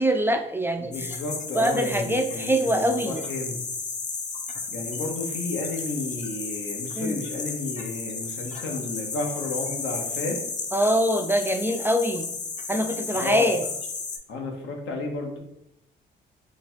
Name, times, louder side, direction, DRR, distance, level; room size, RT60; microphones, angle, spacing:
voice 1, 0.0-1.2 1.5-3.2 7.0-7.2 10.7-12.3 12.7-13.6, equal, 10° right, 6 dB, 0.3 m, -24 dB
voice 2, 0.8-3.6 4.7-10.4 13.1-13.6 14.3-15.4, left 2 dB, 80° left, 2 dB, 1.0 m, -32 dB
sound 1, 0.9-14.2, left 4 dB, 35° left, 0.6 m, -34 dB
3.0 x 2.3 x 4.3 m, 0.81 s
cardioid pair, 90°, 20 cm